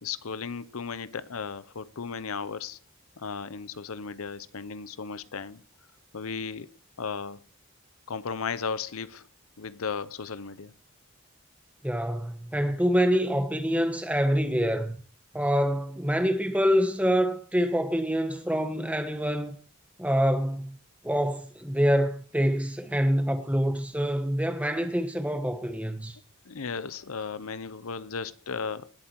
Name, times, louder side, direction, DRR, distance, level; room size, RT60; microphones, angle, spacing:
voice 1, 0.0-2.8 3.2-5.6 6.1-7.4 8.1-9.3 9.6-10.7 26.4-28.9, left 5 dB, 85° left, 0.7 m, -35 dB
voice 2, 11.8-14.9 15.3-19.6 20.0-20.8 21.0-26.2, equal, 5° right, 1.2 m, -26 dB
19.5 x 7.4 x 4.5 m
head